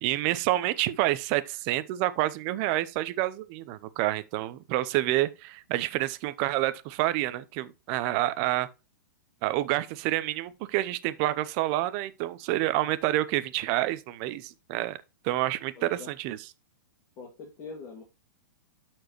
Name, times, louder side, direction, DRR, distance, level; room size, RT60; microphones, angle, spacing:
voice 1, 0.0-8.7 9.4-15.0 15.2-16.4, right 15 dB, 45° right, 0.7 m, -28 dB
voice 2, 15.8-16.1 17.2-18.0, left 4 dB, 40° left, 2.3 m, -43 dB
12.5 x 4.5 x 3.0 m
hypercardioid pair, 125°, 10 cm